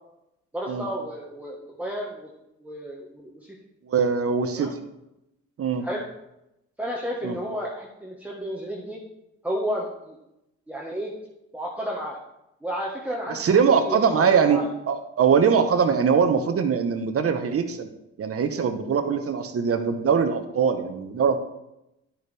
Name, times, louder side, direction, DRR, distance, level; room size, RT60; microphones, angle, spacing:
voice 1, 0.5-2.3 2.6-3.5 4.6-4.7 5.8-6.0 6.8-9.0 9.4-10.2 10.7-11.1 11.5-12.2 12.6-14.7, equal, 5° right, -3 dB, 1.3 m, -32 dB
voice 2, 3.9-4.8 5.6-5.9 7.2-7.4 13.3-14.6 14.9-17.9 18.2-21.4, right 6 dB, 50° right, 7 dB, 1.0 m, -22 dB
11.0 x 6.8 x 3.4 m, 0.88 s
cardioid pair, 90°, 30 cm